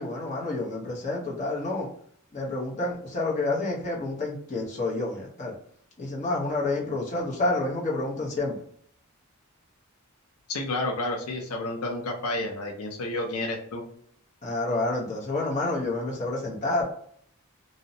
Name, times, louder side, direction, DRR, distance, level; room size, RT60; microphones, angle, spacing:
voice 1, 0.0-1.9 2.3-5.5 6.0-8.6 14.4-16.9, left 2 dB, 35° left, -2 dB, 0.7 m, -29 dB
voice 2, 10.5-13.8, left 2 dB, 80° left, 3 dB, 0.5 m, -30 dB
2.6 x 2.0 x 2.6 m, 0.63 s
head